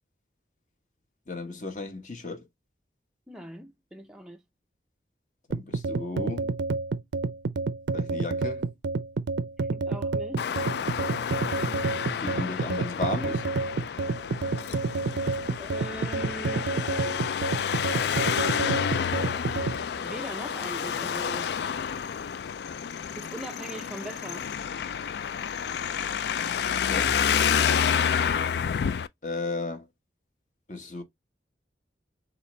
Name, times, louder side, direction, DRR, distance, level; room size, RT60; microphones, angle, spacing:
voice 1, 1.3-2.5 5.5-6.5 7.9-8.7 12.2-13.4 26.8-27.2 29.2-29.9 30.7-31.0, left 2 dB, 45° left, 1.1 m, -34 dB
voice 2, 3.3-4.4 9.7-10.4 15.6-16.7 18.8-19.1 19.5-19.7 20.0-21.5 23.2-24.5, right 1 dB, 5° right, 0.4 m, -41 dB
sound 1, 5.5-19.8, right 3 dB, 80° right, 0.5 m, -29 dB
Traffic noise roadway noise, 10.4-29.1, left 7 dB, 65° left, 0.3 m, -29 dB
6.6 x 2.5 x 3.2 m
head